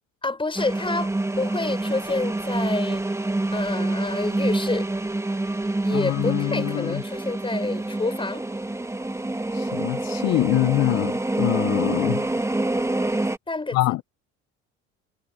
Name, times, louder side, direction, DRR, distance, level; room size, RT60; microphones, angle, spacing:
voice 1, 0.2-1.1 1.4-3.0 3.5-4.9 5.8-8.5 13.5-13.9, left 3 dB, 15° left, 6.7 m, -28 dB
sound 1, 0.6-13.4, right 2 dB, 10° right, 1.6 m, -27 dB
voice 2, 5.9-7.0 9.5-12.2 13.7-14.0, left 17 dB, 55° left, 0.6 m, -24 dB
supercardioid pair, 85°, 32 cm